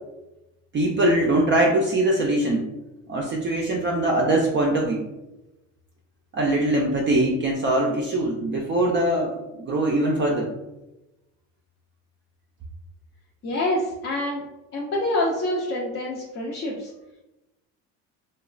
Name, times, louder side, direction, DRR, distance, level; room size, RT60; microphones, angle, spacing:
voice 1, 0.7-2.7 3.1-5.1 6.3-10.5, right 1 dB, 30° right, -1 dB, 0.4 m, -22 dB
voice 2, 13.4-14.4 14.7-16.9, left 1 dB, 35° left, -4 dB, 0.5 m, -26 dB
2.9 x 2.2 x 2.4 m, 0.98 s
supercardioid pair, 100°, 37 cm